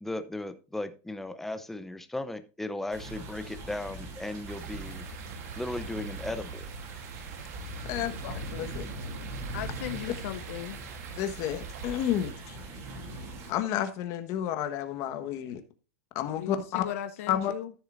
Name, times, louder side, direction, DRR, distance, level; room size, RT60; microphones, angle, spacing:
voice 1, 0.0-5.0 5.6-6.7, left 2 dB, 5° left, 0.6 m, -36 dB
sound 1, 2.9-13.5, right 1 dB, 35° right, 2.7 m, -41 dB
sound 2, 4.5-12.3, right 6 dB, 70° right, 1.7 m, -44 dB
voice 2, 7.8-8.9 11.2-12.6 13.5-15.6 16.1-16.8 17.3-17.5, left 11 dB, 35° left, 1.3 m, -31 dB
voice 3, 9.5-10.8 16.4-17.7, left 12 dB, 60° left, 0.7 m, -37 dB
14.0 x 6.5 x 2.5 m
supercardioid pair, 160°, 9 cm